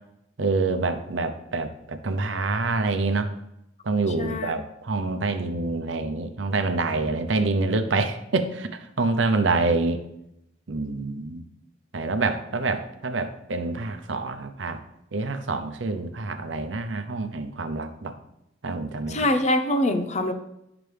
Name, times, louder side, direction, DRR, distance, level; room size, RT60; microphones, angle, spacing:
voice 1, 0.4-3.3 3.8-10.0 10.7-11.4 11.9-14.8 15.1-18.1 18.6-19.2, right 3 dB, 75° right, 8 dB, 0.7 m, -26 dB
voice 2, 4.2-4.5 19.1-20.3, left 1 dB, 40° left, 8 dB, 0.7 m, -24 dB
9.4 x 5.9 x 3.4 m, 0.82 s
head